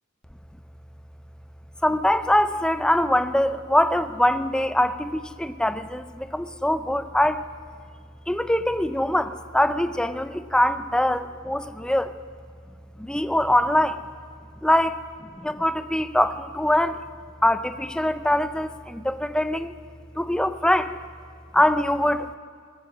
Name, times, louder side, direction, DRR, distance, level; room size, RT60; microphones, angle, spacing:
voice 1, 1.8-7.5 8.3-12.1 13.0-14.0 14.6-15.0 15.4-17.0 17.4-19.7 20.2-21.0 21.5-22.3, left 1 dB, 5° left, 11 dB, 0.4 m, -23 dB
20.5 x 9.8 x 6.3 m, 2.1 s
head